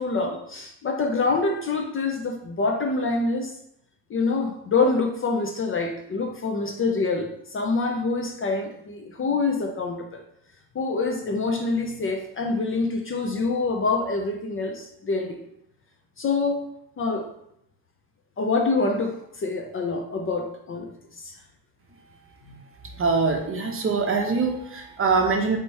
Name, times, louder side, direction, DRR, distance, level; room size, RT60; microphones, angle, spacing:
voice 1, 0.0-3.5 4.1-10.2 10.7-15.4 16.2-16.7 17.0-17.3 18.4-21.3 22.5-22.6, left 3 dB, 30° left, 3 dB, 0.6 m, -26 dB
voice 2, 23.0-25.6, right 4 dB, 30° right, 3 dB, 0.7 m, -23 dB
3.4 x 3.0 x 4.1 m, 0.74 s
supercardioid pair, 75°, 44 cm